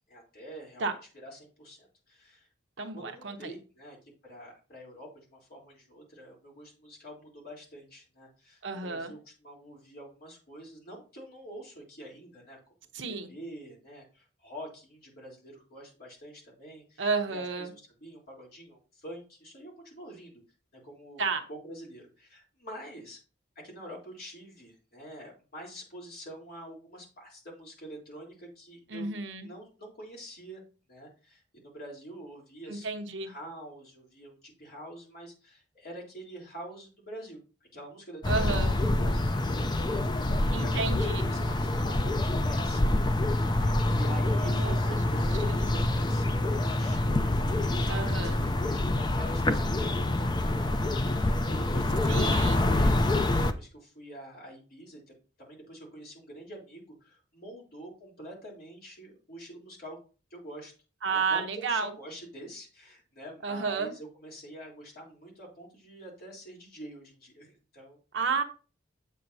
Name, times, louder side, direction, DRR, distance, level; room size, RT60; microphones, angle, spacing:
voice 1, 0.1-0.9 1.1-2.5 2.9-4.0 4.2-12.6 13.1-20.3 20.7-21.2 21.5-23.2 23.6-29.1 29.4-30.6 30.9-32.9 33.2-37.4 37.7-39.5 40.2-42.0 42.3-49.9 50.6-50.7 51.5-60.0 60.3-60.7 61.1-68.0, right 1 dB, 50° left, -3 dB, 3.6 m, -46 dB
voice 2, 2.8-3.5 8.6-9.1 12.9-13.3 17.0-17.7 21.2-21.4 28.9-29.5 32.7-33.3 38.3-38.7 40.5-41.3 44.4-45.0 45.4-45.9 47.9-48.4 52.1-52.6 61.0-61.9 63.4-63.9 68.1-68.4, right 4 dB, 70° right, 6 dB, 1.0 m, -31 dB
sound 1, 38.2-53.5, left 1 dB, 20° left, 0.4 m, -26 dB
7.9 x 7.5 x 2.8 m, 0.35 s
head